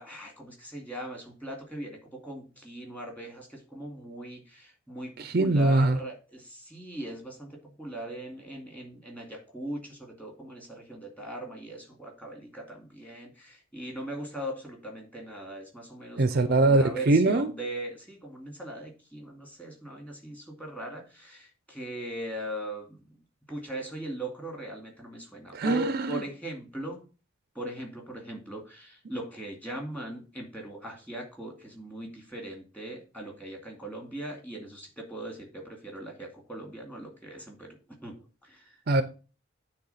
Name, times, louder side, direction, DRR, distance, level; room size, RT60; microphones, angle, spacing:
voice 1, 0.0-23.2 23.5-27.0 27.6-37.8 38.0-38.1 38.4-38.7, right 1 dB, 10° left, 2.2 m, -39 dB
voice 2, 5.2-6.0 16.2-17.5 25.5-26.2 38.9-39.0, right 2 dB, 50° right, 0.6 m, -22 dB
9.3 x 3.6 x 5.6 m
head